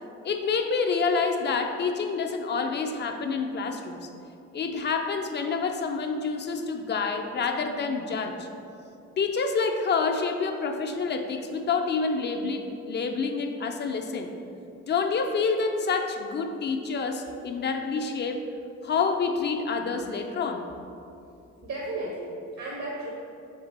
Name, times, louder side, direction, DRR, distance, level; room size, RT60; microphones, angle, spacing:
voice 1, 0.2-4.1 4.5-8.5 9.2-14.3 14.9-18.4 18.8-20.7, left 4 dB, 35° left, 5 dB, 0.4 m, -28 dB
voice 2, 21.6-23.1, right 2 dB, 60° right, -3 dB, 0.7 m, -34 dB
3.6 x 3.3 x 4.0 m, 2.6 s
cardioid pair, 90°, 30 cm